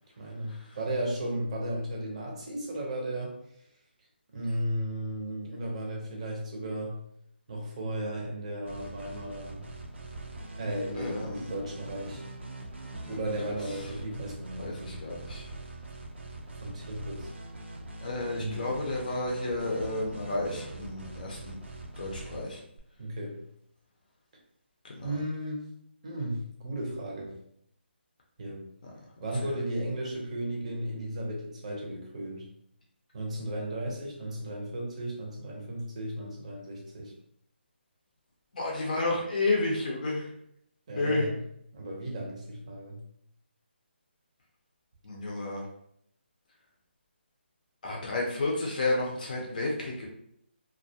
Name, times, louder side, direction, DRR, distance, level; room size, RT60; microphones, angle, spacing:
voice 1, 0.2-3.4 4.3-7.0 7.5-9.6 10.5-12.2 13.1-15.0 16.6-17.3 18.4-18.7 23.0-23.4 25.0-25.7 26.0-27.4 28.4-28.7 29.2-32.5 33.1-37.1 40.9-41.4 41.7-43.0, right 1 dB, 35° right, -1 dB, 0.6 m, -35 dB
sound 1, 8.6-22.8, right 2 dB, 85° right, 0.5 m, -43 dB
voice 2, 10.9-11.5 14.6-15.5 18.0-21.6 22.0-22.6 24.8-25.1 28.8-28.9 29.4-29.6 38.5-40.3 41.0-41.3 45.0-45.7 47.8-50.1, left 2 dB, 45° left, -2 dB, 0.5 m, -31 dB
2.3 x 2.1 x 2.7 m, 0.72 s
hypercardioid pair, 165°, 6 cm